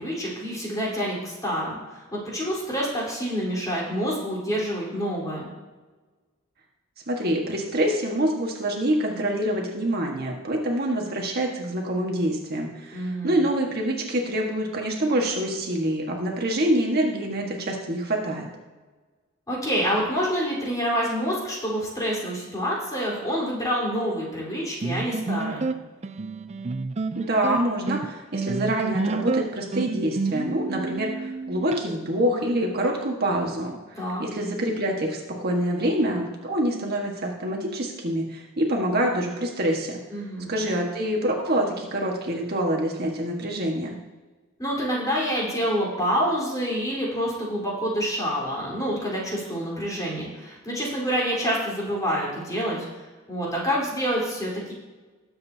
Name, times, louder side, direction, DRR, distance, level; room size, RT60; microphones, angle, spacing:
voice 1, 0.0-5.5 12.9-13.3 19.5-25.7 34.0-34.2 40.1-40.5 44.6-52.8 53.3-54.7, equal, 20° left, -5 dB, 4.1 m, -27 dB
voice 2, 7.1-18.4 27.1-39.9 40.5-44.0, right 1 dB, 50° right, 0 dB, 1.6 m, -26 dB
sound 1, 24.8-31.8, right 3 dB, 35° right, 0.4 m, -29 dB
20.0 x 7.9 x 2.8 m, 1.3 s
head